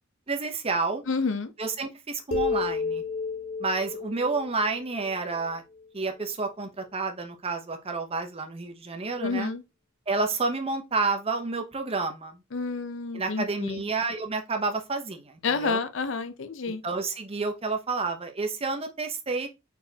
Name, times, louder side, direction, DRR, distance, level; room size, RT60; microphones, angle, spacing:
voice 1, 0.3-1.0 1.6-3.0 3.6-5.6 5.9-9.5 10.1-12.4 13.1-15.8 16.8-19.5, right 3 dB, 30° right, 0.7 m, -30 dB
voice 2, 1.1-1.5 9.2-9.6 12.5-13.8 15.4-16.8, left 4 dB, 70° left, 0.6 m, -29 dB
sound 1, 2.3-5.8, left 4 dB, 90° left, 1.1 m, -32 dB
4.2 x 4.1 x 2.8 m
head